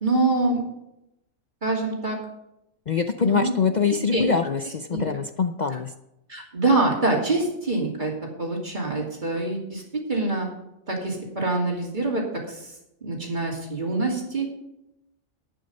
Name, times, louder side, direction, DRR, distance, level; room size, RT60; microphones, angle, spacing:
voice 1, 0.0-0.6 1.6-2.2 3.2-3.5 4.1-4.3 4.9-5.0 6.3-10.5 10.9-12.7 13.0-14.5, right 2 dB, 35° right, -1 dB, 2.9 m, -25 dB
voice 2, 2.9-5.9, left 6 dB, 50° left, 8 dB, 0.5 m, -24 dB
11.5 x 9.0 x 5.4 m, 0.85 s
omnidirectional pair, 1.4 m